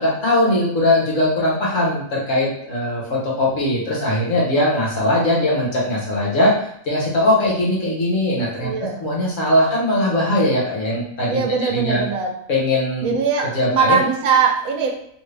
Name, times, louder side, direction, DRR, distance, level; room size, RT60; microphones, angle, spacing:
voice 1, 0.0-6.5 6.8-12.0 12.5-13.1 13.4-14.0, left 1 dB, 65° left, -5 dB, 1.5 m, -20 dB
voice 2, 8.6-9.0 11.3-12.3 13.0-14.9, right 5 dB, 90° right, 1 dB, 1.1 m, -20 dB
3.2 x 2.6 x 3.3 m, 0.70 s
omnidirectional pair, 1.4 m